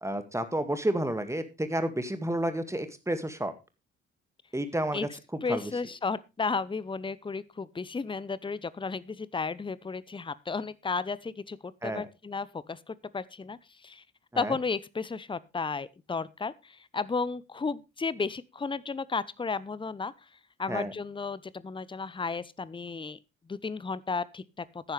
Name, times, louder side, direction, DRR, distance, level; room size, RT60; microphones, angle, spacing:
voice 1, 0.0-3.5 4.5-5.1 5.5-5.7 11.8-12.1 14.3-14.6 20.7-20.9, right 1 dB, 10° right, 9 dB, 2.0 m, -30 dB
voice 2, 5.4-14.0 14.4-20.1 20.6-23.2 23.5-24.9, left 4 dB, 15° left, 19 dB, 0.7 m, -33 dB
15.0 x 10.0 x 3.3 m, 0.27 s
figure-of-eight pair, 40°, 32 cm